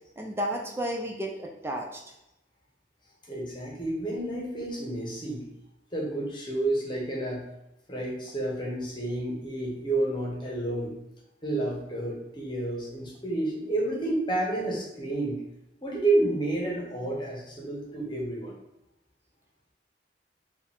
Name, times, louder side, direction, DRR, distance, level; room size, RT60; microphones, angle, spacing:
voice 1, 0.2-2.0, equal, 15° right, 1 dB, 0.4 m, -32 dB
voice 2, 3.3-5.4 5.9-7.4 7.9-10.9 11.4-15.4 15.8-18.5, right 2 dB, 25° left, -2 dB, 1.1 m, -30 dB
5.0 x 2.5 x 3.5 m, 0.87 s
head